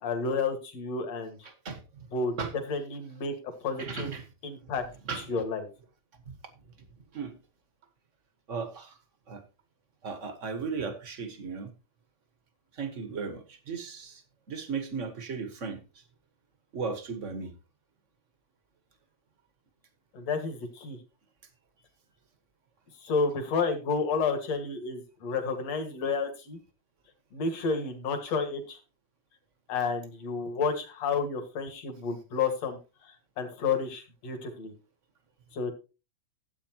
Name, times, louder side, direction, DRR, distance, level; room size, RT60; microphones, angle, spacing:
voice 1, 0.0-1.4 2.1-2.3 2.7-3.3 3.6-4.1 4.4-4.8 5.3-5.7 20.1-21.0 23.0-26.6 27.3-28.8 29.7-34.7 35.5-35.7, left 4 dB, 60° left, 6 dB, 2.9 m, -31 dB
voice 2, 1.4-2.1 2.4-2.5 3.8-4.3 5.1-5.3 6.3-6.4 7.1-7.3 8.5-9.0 9.3-9.4 10.0-11.7 12.7-14.2 14.5-16.0 16.7-17.5, right 5 dB, 40° right, 8 dB, 1.1 m, -36 dB
14.5 x 8.4 x 2.9 m, 0.31 s
omnidirectional pair, 3.3 m